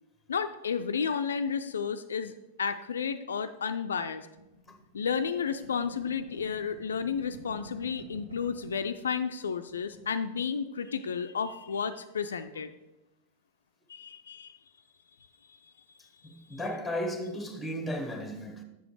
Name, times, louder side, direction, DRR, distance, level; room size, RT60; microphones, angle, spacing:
voice 1, 0.3-2.3 2.6-4.3 4.9-12.7 13.9-14.6 15.5-15.7 16.5-16.6, left 6 dB, 70° left, 0.3 m, -32 dB
sound 1, 4.4-8.9 9.2-9.4 9.6-10.2, equal, 85° right, 1.5 m, -50 dB
voice 2, 16.2-18.6, equal, 5° left, 1.0 m, -35 dB
6.8 x 6.3 x 4.7 m
figure-of-eight pair, 90°, 0 cm